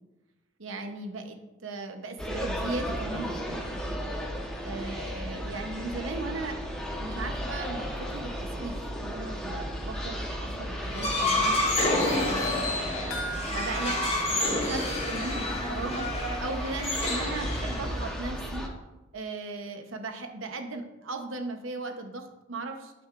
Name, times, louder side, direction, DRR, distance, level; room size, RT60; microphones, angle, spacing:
voice 1, 0.6-4.1 4.6-6.6 7.0-11.6 12.0-13.0 13.5-18.7 19.1-22.9, right 2 dB, 70° right, 5 dB, 1.0 m, -37 dB
sound 1, 2.2-18.7, equal, 5° left, 1.2 m, -35 dB
sound 2, 10.8-18.1, left 1 dB, 35° left, 3.0 m, -29 dB
sound 3, 13.1-15.6 15.9-16.0 16.5-16.6, right 2 dB, 85° left, 1.0 m, -41 dB
11.5 x 6.0 x 2.6 m, 1.0 s
head